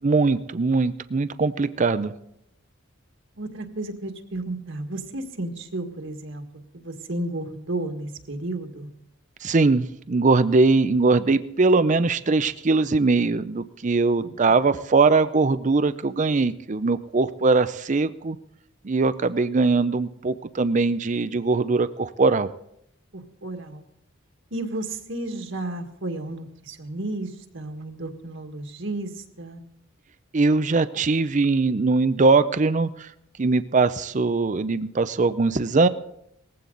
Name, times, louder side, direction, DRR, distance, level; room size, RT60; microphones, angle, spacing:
voice 1, 0.0-2.1 9.4-18.4 18.8-22.5 30.3-33.1 33.4-35.9, right 3 dB, 40° right, 13 dB, 0.5 m, -21 dB
voice 2, 3.4-6.4 6.7-8.9 14.5-14.6 23.1-23.8 24.5-27.3 27.5-29.1 29.4-29.6, right 2 dB, 65° right, 5 dB, 1.8 m, -32 dB
19.5 x 15.5 x 3.9 m, 0.75 s
head